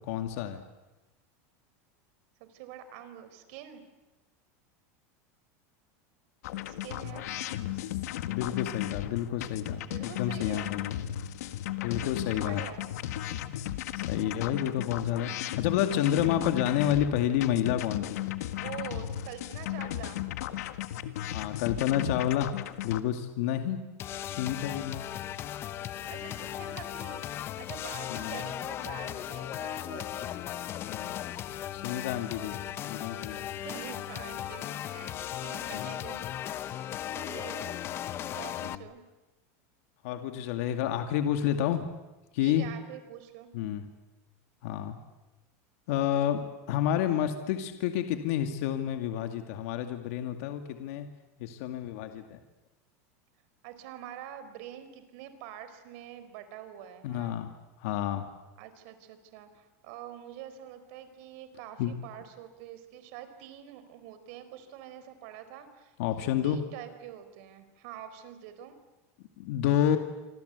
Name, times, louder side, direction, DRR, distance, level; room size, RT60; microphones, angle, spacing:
voice 1, 0.1-0.6 7.8-7.9 8.3-11.0 11.8-12.6 13.9-18.2 21.3-22.6 22.8-23.8 24.3-25.1 28.1-28.4 30.8-31.2 31.7-32.6 32.8-33.5 35.7-35.9 38.6-38.8 40.0-41.9 42.3-42.7 43.5-43.9 44.6-45.0 45.9-51.1 51.4-52.4 57.0-57.5 57.8-58.3 61.8-62.0 66.0-66.6 69.4-70.0, left 10 dB, 60° left, 6 dB, 2.2 m, -29 dB
voice 2, 2.4-3.8 6.7-7.3 9.9-10.7 11.9-12.9 18.5-20.2 26.1-30.3 33.6-36.2 36.8-37.8 38.3-39.0 42.4-43.5 53.6-57.4 58.6-68.8, right 10 dB, 55° right, 10 dB, 4.2 m, -46 dB
sound 1, 6.4-23.0, left 13 dB, 80° left, 1.7 m, -35 dB
sound 2, 24.0-38.8, left 11 dB, 30° left, 0.9 m, -37 dB
27.0 x 26.0 x 8.2 m, 1.1 s
supercardioid pair, 165°, 8 cm